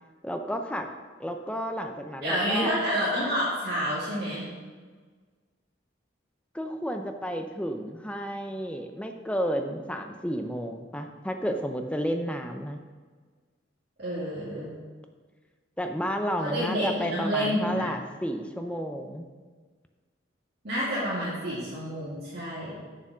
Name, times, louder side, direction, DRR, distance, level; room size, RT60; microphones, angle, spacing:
voice 1, 0.2-0.9 1.2-2.7 6.5-12.8 15.8-19.3, equal, 5° left, 5 dB, 0.5 m, -31 dB
voice 2, 2.2-4.5 14.0-14.7 16.4-17.9 20.6-22.8, equal, 55° right, -9 dB, 2.3 m, -29 dB
7.3 x 6.8 x 6.1 m, 1.5 s
head